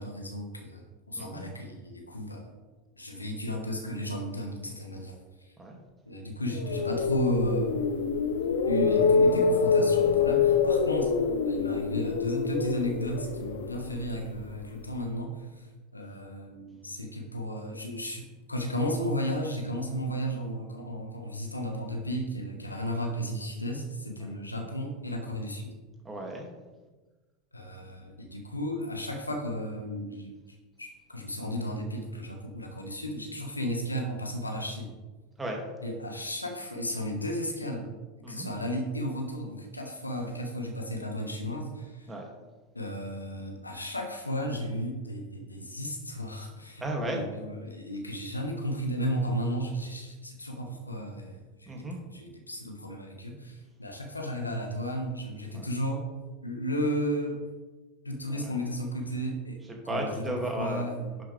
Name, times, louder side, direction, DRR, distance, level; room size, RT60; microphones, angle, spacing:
voice 1, 0.0-2.5 3.0-5.1 5.4-5.5 6.0-7.8 8.6-11.1 11.4-15.7 15.9-25.8 27.5-30.4 30.8-34.9 35.8-37.9 38.3-42.1 42.7-51.7 52.1-56.0 56.4-57.4 58.0-59.6 59.9-60.1 60.6-61.1, equal, 90° left, 3 dB, 1.4 m, -34 dB
sound 1, 6.5-14.6, left 5 dB, 65° left, 0.7 m, -25 dB
voice 2, 26.0-26.5 35.4-35.6 38.2-38.5 42.1-42.3 46.8-47.2 51.7-52.0 55.5-55.7 58.3-58.6 59.7-61.2, right 1 dB, 15° right, 1 dB, 2.3 m, -35 dB
11.0 x 7.9 x 3.4 m, 1.2 s
figure-of-eight pair, 80°, 0 cm